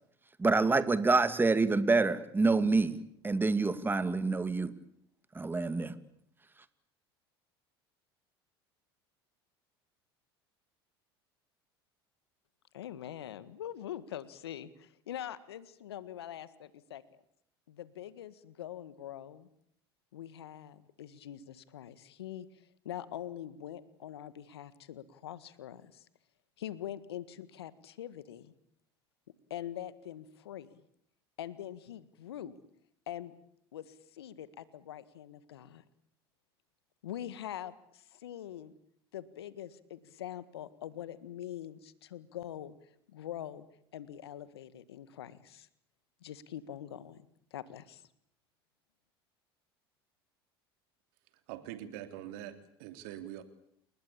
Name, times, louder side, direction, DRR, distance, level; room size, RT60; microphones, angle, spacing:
voice 1, 0.4-4.7 5.3-6.0, right 3 dB, 15° right, 13 dB, 2.3 m, -27 dB
voice 2, 12.7-17.0 17.7-19.5 20.1-26.1 26.6-28.5 29.5-30.8 31.4-32.6 33.1-33.3 33.7-35.8 37.0-38.7 39.1-42.7 43.1-43.6 43.9-45.7 46.2-48.0, left 11 dB, 80° left, 15 dB, 1.7 m, -44 dB
voice 3, 51.5-53.4, right 12 dB, 65° right, 9 dB, 3.3 m, -44 dB
29.5 x 20.5 x 8.7 m, 0.70 s
hypercardioid pair, 75°, 13 cm